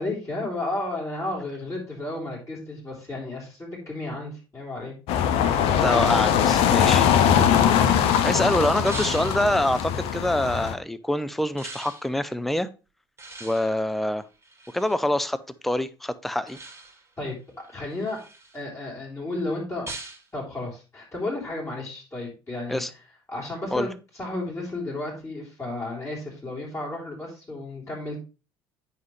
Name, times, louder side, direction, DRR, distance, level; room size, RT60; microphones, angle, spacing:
voice 1, 0.0-4.9 5.2-5.9 7.5-8.0 8.3-8.5 17.2-18.2 18.5-19.9 20.3-22.8 23.3-23.9 24.2-28.2, left 2 dB, 25° left, 3.6 m, -33 dB
sound 1, 5.1-10.7, left 9 dB, 55° left, 0.7 m, -21 dB
sound 2, 5.5-8.1 8.9-9.8 11.6-12.1 13.2-15.1 16.5-17.1 17.6-18.6 19.9-20.3, right 2 dB, 20° right, 2.1 m, -42 dB
voice 2, 5.8-7.1 8.2-12.7 13.4-14.2 14.7-16.6 22.7-22.9 23.7-23.9, left 1 dB, ahead, 0.5 m, -25 dB
9.4 x 5.5 x 3.2 m
figure-of-eight pair, 60°, 12 cm